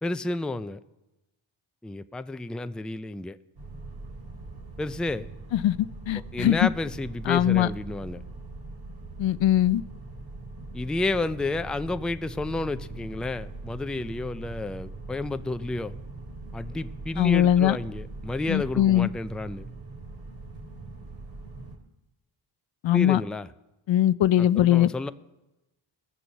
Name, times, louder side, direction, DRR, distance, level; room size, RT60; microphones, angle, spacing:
voice 1, 0.0-0.8 1.8-3.4 4.8-5.3 6.3-8.2 10.7-15.9 16.5-19.7 22.9-23.5 24.4-25.1, left 2 dB, ahead, 11 dB, 0.4 m, -31 dB
sound 1, 3.6-21.8, right 3 dB, 55° right, 3.2 m, -41 dB
voice 2, 6.1-6.7 7.3-7.7 9.2-9.8 17.2-17.8 18.5-19.1 22.8-23.2 23.9-24.9, left 12 dB, 65° left, 17 dB, 0.6 m, -21 dB
18.0 x 6.9 x 7.5 m, 0.99 s
cardioid pair, 60°, 50 cm